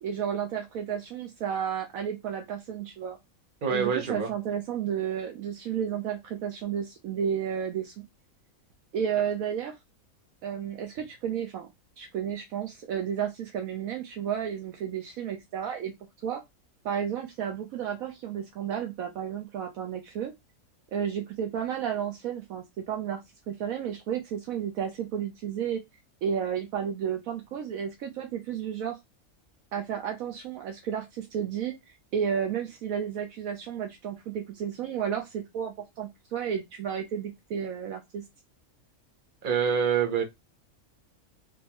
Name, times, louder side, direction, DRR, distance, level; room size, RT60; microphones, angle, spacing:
voice 1, 0.0-3.2 3.7-7.9 8.9-9.8 10.4-11.7 12.0-15.9 16.2-16.4 16.8-20.3 20.9-23.2 23.5-25.8 26.2-29.0 29.7-38.2, right 8 dB, 70° right, 1.0 m, -32 dB
voice 2, 3.6-4.3 39.4-40.2, right 6 dB, 45° right, 0.8 m, -26 dB
3.7 x 2.6 x 2.9 m
omnidirectional pair, 1.6 m